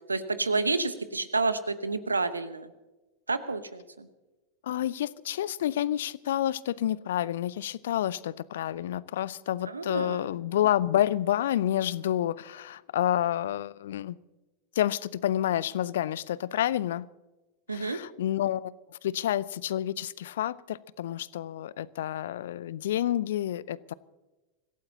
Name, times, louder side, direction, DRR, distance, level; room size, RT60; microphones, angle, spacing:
voice 1, 0.1-2.7 3.3-4.1 9.7-10.2 17.7-18.0, right 3 dB, 80° right, 1.0 m, -29 dB
voice 2, 4.6-14.2 14.7-17.1 17.7-23.9, left 12 dB, 60° left, 0.5 m, -29 dB
25.5 x 16.5 x 2.8 m
figure-of-eight pair, 90°, 0 cm